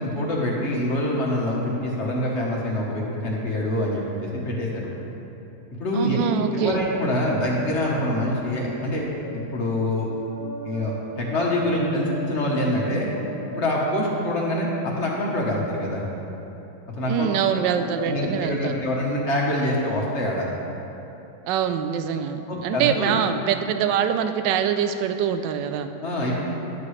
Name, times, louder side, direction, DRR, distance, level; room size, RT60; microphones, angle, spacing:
voice 1, 0.0-4.9 5.8-6.2 6.5-9.0 9.3-10.1 10.6-13.1 13.5-16.0 17.0-17.3 17.7-20.5 22.5-23.2 26.0-26.4, left 1 dB, 40° left, -3 dB, 1.2 m, -25 dB
voice 2, 5.9-6.8 17.1-18.7 21.5-25.9, right 8 dB, 75° right, 8 dB, 1.1 m, -24 dB
sound 1, 8.6-15.2, right 1 dB, 20° left, 0.8 m, -38 dB
11.5 x 8.2 x 3.2 m, 3.0 s
omnidirectional pair, 2.2 m